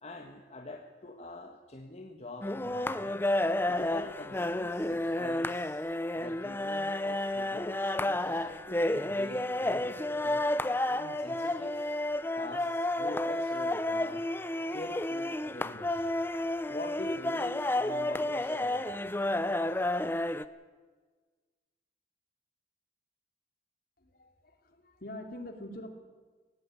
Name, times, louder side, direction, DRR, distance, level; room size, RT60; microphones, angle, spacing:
voice 1, 0.0-3.2 3.7-5.8 6.1-10.4 10.8-12.0 12.3-14.2 14.7-16.1 16.7-19.1, left 1 dB, 40° left, 1 dB, 1.6 m, -44 dB
sound 1, 2.4-20.4, left 1 dB, 15° left, 0.6 m, -31 dB
voice 2, 24.0-25.9, left 1 dB, 55° left, 5 dB, 2.9 m, -44 dB
18.0 x 15.0 x 9.9 m, 1.4 s
head